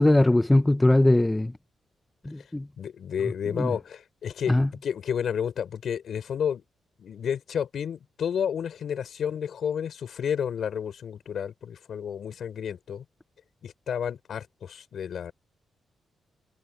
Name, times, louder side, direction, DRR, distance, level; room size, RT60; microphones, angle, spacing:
voice 1, 0.0-1.5 2.3-2.7 3.6-3.7 4.5-4.7, left 1 dB, 10° left, 0.5 m, -20 dB
voice 2, 2.8-6.6 7.0-13.0 13.6-15.3, left 8 dB, 60° left, 5.6 m, -31 dB
wide cardioid pair, 160°, 0 cm